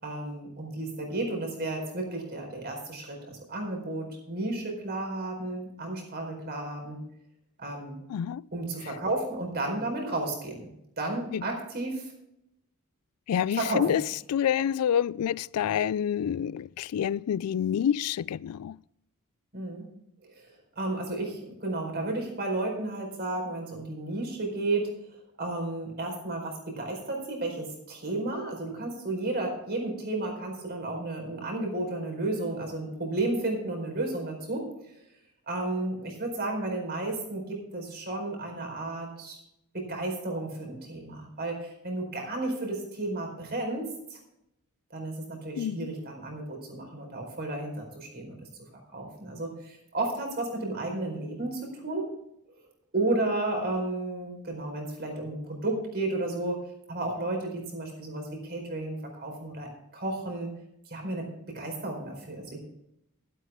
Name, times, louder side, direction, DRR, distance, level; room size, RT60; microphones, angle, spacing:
voice 1, 0.0-7.0 7.6-8.0 8.5-10.7 11.0-12.1 13.5-14.0 19.5-19.9 20.2-24.9 25.4-34.7 35.5-39.4 39.7-44.2 44.9-48.4 48.9-52.1 52.9-56.6 56.9-60.5 60.9-62.6, right 2 dB, 45° right, 4.6 m, -33 dB
voice 2, 8.1-8.5 8.8-8.9 11.3-11.4 13.3-18.8 45.5-45.9, left 9 dB, 80° left, 0.3 m, -28 dB
12.5 x 12.0 x 3.6 m
head